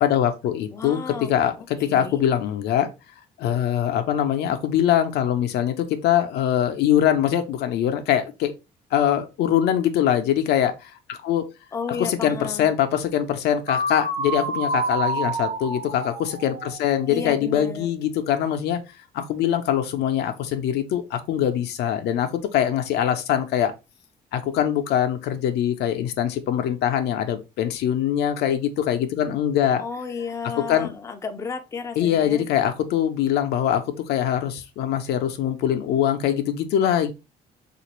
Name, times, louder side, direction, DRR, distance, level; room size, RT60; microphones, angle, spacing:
voice 1, 0.0-2.9 3.4-8.5 8.9-11.4 12.0-18.8 19.1-23.7 24.3-29.8 30.7-30.9 32.0-37.1, left 10 dB, 75° left, 0.6 m, -23 dB
voice 2, 0.7-2.2 11.7-12.8 17.1-17.9 29.8-32.5, left 5 dB, 15° left, 0.4 m, -33 dB
sound 1, 13.7-17.5, right 2 dB, 50° right, 1.0 m, -28 dB
3.2 x 2.5 x 3.0 m
cardioid pair, 110°, 17 cm